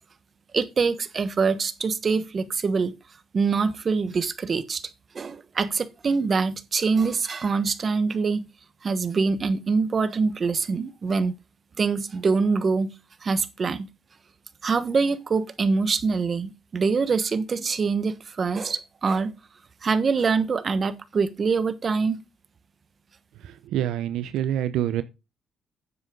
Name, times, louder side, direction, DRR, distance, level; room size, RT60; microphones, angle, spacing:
voice 1, 0.5-2.9 3.3-4.8 5.1-8.5 8.8-11.3 11.8-12.9 13.2-13.9 14.6-19.3 19.8-22.2, right 4 dB, 40° right, 1.2 m, -24 dB
voice 2, 23.7-25.0, right 11 dB, 85° right, 0.6 m, -26 dB
9.6 x 7.5 x 3.8 m
cardioid pair, 90°, 0 cm